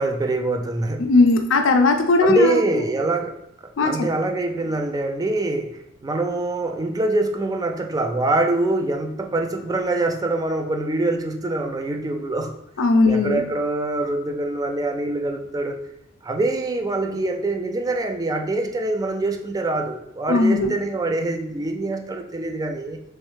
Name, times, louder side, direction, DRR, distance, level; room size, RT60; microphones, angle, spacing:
voice 1, 0.0-1.0 2.2-3.4 3.6-12.5 13.1-15.8 16.2-23.0, right 2 dB, 20° right, 5 dB, 0.3 m, -24 dB
voice 2, 1.0-2.8 3.8-4.1 12.8-13.4 20.3-20.7, left 3 dB, 80° left, 5 dB, 0.5 m, -18 dB
3.2 x 3.2 x 3.1 m, 0.85 s
head